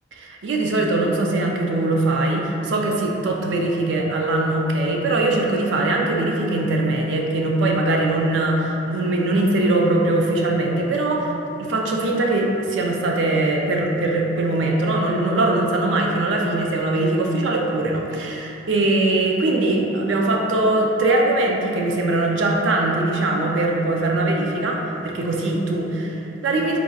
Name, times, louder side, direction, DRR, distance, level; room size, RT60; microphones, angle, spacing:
voice 1, 0.2-11.3 11.6-26.8, right 2 dB, 90° right, 0 dB, 0.4 m, -21 dB
4.0 x 2.3 x 2.6 m, 3.0 s
head